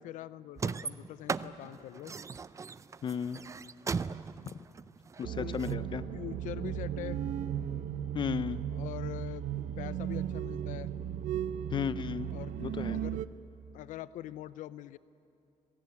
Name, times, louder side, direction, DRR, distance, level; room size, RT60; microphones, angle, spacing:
voice 1, 0.0-2.1 5.3-5.6 6.1-7.2 8.7-9.5 9.8-10.9 12.3-12.5 12.9-13.2 13.7-15.0, left 13 dB, 85° left, 16 dB, 0.6 m, -43 dB
sound 1, 0.6-5.7, right 5 dB, 25° right, 0.5 m, -37 dB
voice 2, 3.0-3.4 4.5-4.6 5.2-6.0 8.1-8.6 11.7-12.3 12.6-13.0, left 7 dB, 40° left, 15 dB, 0.7 m, -34 dB
sound 2, 5.2-13.3, right 10 dB, 80° right, 0.7 m, -36 dB
25.5 x 22.0 x 8.5 m, 2.6 s
cardioid pair, 135°, 13 cm